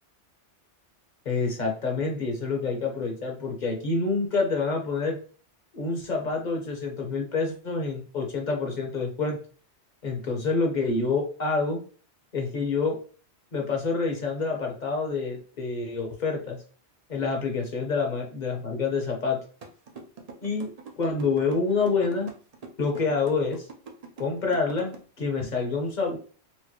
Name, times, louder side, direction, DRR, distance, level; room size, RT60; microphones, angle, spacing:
voice 1, 1.2-5.2 5.7-9.4 10.0-11.8 12.3-13.0 13.5-16.6 17.1-19.4 20.4-20.7 21.0-22.3 22.8-23.7 24.2-26.2, left 4 dB, 45° left, 2 dB, 0.9 m, -27 dB
sound 1, 19.6-25.0, right 5 dB, 45° right, 0.6 m, -43 dB
4.5 x 2.1 x 2.9 m, 0.40 s
omnidirectional pair, 1.2 m